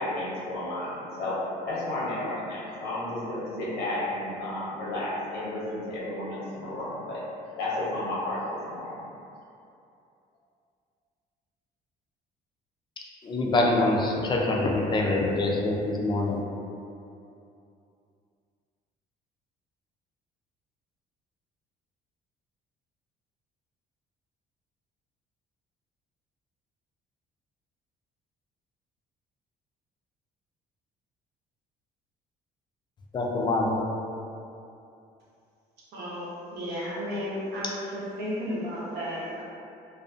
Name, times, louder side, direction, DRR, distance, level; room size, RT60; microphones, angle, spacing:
voice 1, 0.0-7.2 7.6-9.0, left 1 dB, 85° left, 0.8 m, -32 dB
voice 2, 13.2-16.4 33.1-33.8, left 2 dB, 25° left, 0.4 m, -25 dB
voice 3, 35.9-39.4, equal, 75° right, 0.7 m, -33 dB
2.5 x 2.2 x 2.4 m
cardioid pair, 110°, 17 cm